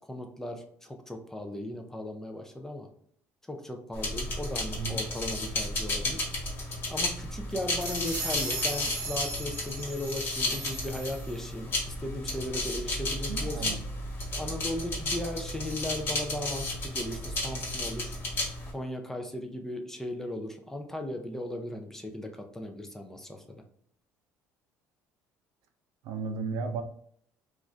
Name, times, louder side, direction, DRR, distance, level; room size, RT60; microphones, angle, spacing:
voice 1, 0.1-2.9 3.5-6.3 6.9-13.8 14.4-18.2 18.7-23.6, left 1 dB, 5° left, 4 dB, 0.4 m, -37 dB
sound 1, 3.9-18.7, left 2 dB, 40° left, 1.1 m, -33 dB
sound 2, 7.5-11.5, right 2 dB, 30° right, 1.1 m, -38 dB
voice 2, 13.3-13.8 26.0-26.8, right 5 dB, 75° right, 6 dB, 0.4 m, -34 dB
2.5 x 2.4 x 3.2 m, 0.64 s
cardioid pair, 130°, 6 cm